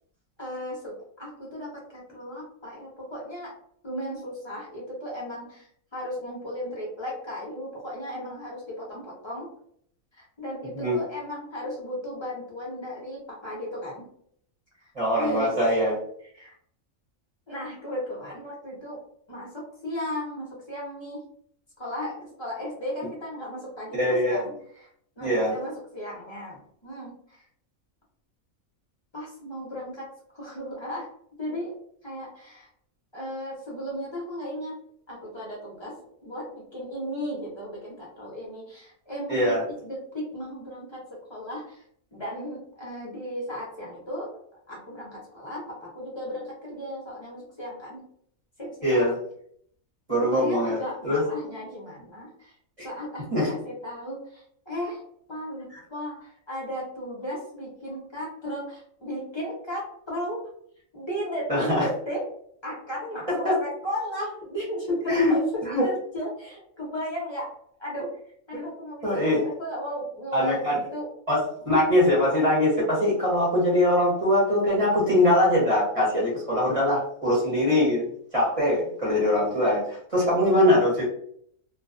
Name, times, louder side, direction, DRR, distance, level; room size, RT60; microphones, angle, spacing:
voice 1, 0.4-3.5 3.8-5.7 5.9-9.5 10.1-14.1 14.8-15.5 16.3-16.5 17.5-19.0 19.3-21.2 21.8-24.9 25.2-27.4 29.1-30.1 30.3-31.1 31.4-31.7 32.0-32.7 33.1-34.7 35.1-35.9 36.2-39.5 39.8-41.0 41.3-41.8 42.1-44.3 44.7-48.0 48.6-49.1 50.3-52.5 52.8-55.0 55.3-60.4 60.9-62.2 62.6-65.4 65.8-67.5 67.8-68.1 68.5-71.1 80.3-80.5, equal, 30° left, -4 dB, 0.5 m, -35 dB
voice 2, 14.9-16.0 23.9-24.4 25.2-25.5 39.3-39.6 48.8-49.2 50.1-50.8 51.0-51.2 52.8-52.9 53.3-53.5 61.5-61.9 63.4-63.5 65.1-65.4 65.6-65.8 69.0-69.4 70.3-70.8 71.3-78.1 78.3-81.0, left 1 dB, 35° right, -5 dB, 0.7 m, -22 dB
2.3 x 2.2 x 2.4 m, 0.66 s
omnidirectional pair, 1.5 m